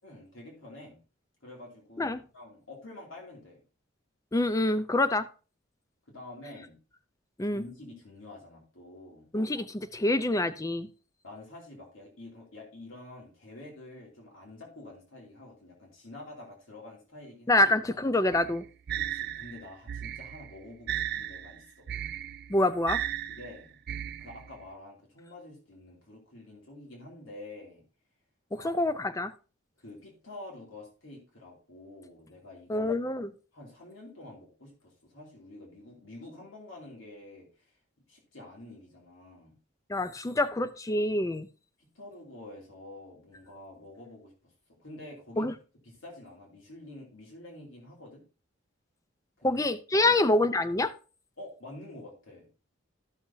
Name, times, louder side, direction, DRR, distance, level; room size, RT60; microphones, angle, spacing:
voice 1, 0.0-1.0 1.4-3.6 6.1-6.8 7.5-9.3 11.2-17.7 19.0-21.9 23.3-23.8 24.2-27.8 28.5-28.8 29.8-32.9 33.5-37.8 38.1-39.5 41.8-45.5 45.8-48.2 49.4-49.6 51.4-52.5, left 2 dB, 85° left, -2 dB, 2.8 m, -48 dB
voice 2, 4.3-5.3 7.4-7.6 9.3-10.9 17.5-18.6 22.5-23.0 28.5-29.3 32.7-33.3 39.9-41.5 45.4-45.5 49.4-50.9, left 2 dB, 15° left, 12 dB, 0.4 m, -26 dB
sound 1, 18.3-24.6, right 10 dB, 50° right, 0.4 m, -36 dB
12.5 x 6.4 x 2.8 m, 0.35 s
head